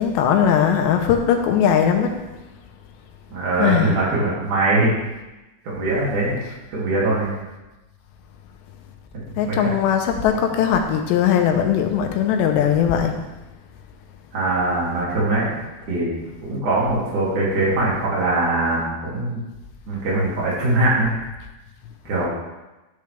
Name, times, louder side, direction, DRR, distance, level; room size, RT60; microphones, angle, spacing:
voice 1, 0.0-2.2 3.6-3.9 9.4-13.2, left 8 dB, 90° left, 5 dB, 3.0 m, -19 dB
voice 2, 3.3-4.9 5.6-6.4 6.7-7.3 9.1-9.7 14.3-15.6 15.9-16.1 16.4-19.4 19.9-21.1 22.1-22.3, right 2 dB, 50° right, -7 dB, 3.7 m, -22 dB
11.0 x 6.8 x 3.4 m, 1.1 s
omnidirectional pair, 4.9 m